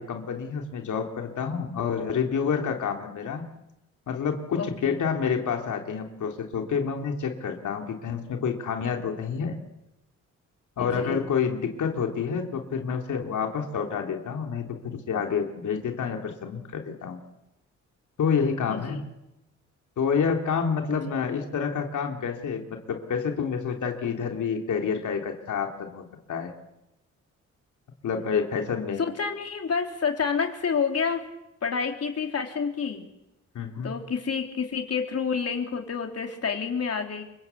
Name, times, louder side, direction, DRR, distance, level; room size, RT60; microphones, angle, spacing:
voice 1, 0.0-3.4 4.1-9.6 10.8-17.2 18.2-19.0 20.0-26.5 28.0-29.0 33.5-33.9, left 6 dB, 80° left, 3 dB, 3.3 m, -28 dB
voice 2, 4.6-5.0 10.8-11.3 18.7-19.1 29.0-31.2 31.6-33.1 33.8-37.2, left 6 dB, 55° left, 4 dB, 3.6 m, -29 dB
28.0 x 24.0 x 8.4 m, 0.91 s
cardioid pair, 95°, 30 cm